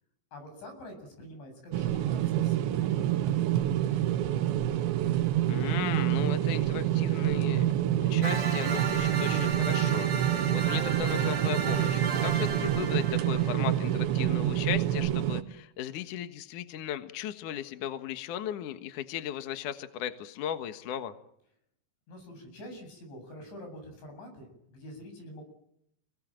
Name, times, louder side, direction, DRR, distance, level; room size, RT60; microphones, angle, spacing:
voice 1, 0.3-3.9 22.1-25.4, equal, 80° left, 5 dB, 10.5 m, -46 dB
sound 1, 1.7-15.4, right 12 dB, 80° right, 3.6 m, -27 dB
voice 2, 5.5-7.7 8.0-21.1, left 10 dB, 60° left, 9 dB, 2.3 m, -36 dB
sound 2, 8.2-14.1, right 4 dB, 40° right, 3.6 m, -35 dB
29.5 x 21.0 x 9.1 m, 0.75 s
omnidirectional pair, 5.2 m